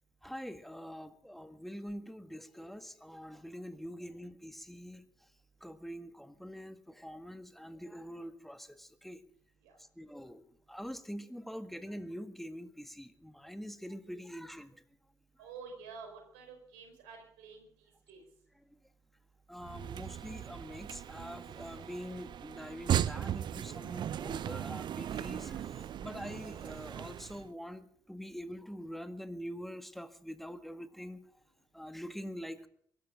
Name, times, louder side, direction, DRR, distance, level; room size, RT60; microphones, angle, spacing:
voice 1, 0.2-5.0 5.6-9.2 9.8-10.4 10.7-14.8 19.5-31.2 31.7-32.7, equal, ahead, 9 dB, 1.9 m, -45 dB
voice 2, 15.4-18.2, right 5 dB, 75° right, 3 dB, 4.9 m, -50 dB
sound 1, 19.6-27.5, right 10 dB, 55° right, 0.6 m, -37 dB
24.0 x 13.0 x 3.8 m, 0.62 s
hypercardioid pair, 45°, 9 cm